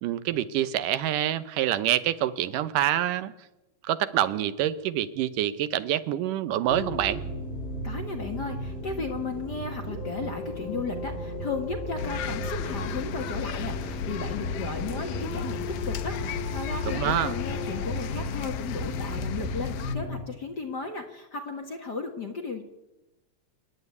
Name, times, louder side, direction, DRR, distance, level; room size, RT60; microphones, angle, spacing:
voice 1, 0.0-3.3 3.8-7.2 16.8-17.3, right 12 dB, 85° right, 13 dB, 2.5 m, -26 dB
sound 1, 6.7-20.2, equal, 20° left, 4.3 m, -35 dB
voice 2, 7.8-22.6, left 4 dB, 40° left, 3 dB, 1.6 m, -35 dB
sound 2, 12.0-20.0, left 9 dB, 85° left, 2.5 m, -34 dB
26.5 x 10.5 x 9.4 m, 1.0 s
omnidirectional pair, 3.7 m